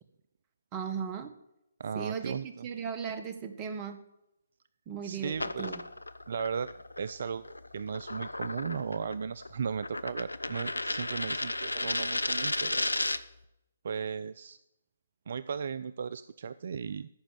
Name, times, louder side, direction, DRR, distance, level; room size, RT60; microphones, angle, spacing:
voice 1, 0.7-1.3 1.9-4.0 4.9-5.8, right 6 dB, 25° right, 9 dB, 1.5 m, -37 dB
voice 2, 1.8-2.7 5.0-5.7 6.3-6.7 7.0-7.4 7.7-12.9 13.8-14.6 15.3-17.1, right 6 dB, 55° right, 16 dB, 0.4 m, -36 dB
sound 1, 5.3-13.4, left 2 dB, 85° left, 0.7 m, -34 dB
14.0 x 6.2 x 9.3 m, 0.85 s
figure-of-eight pair, 135°, 0 cm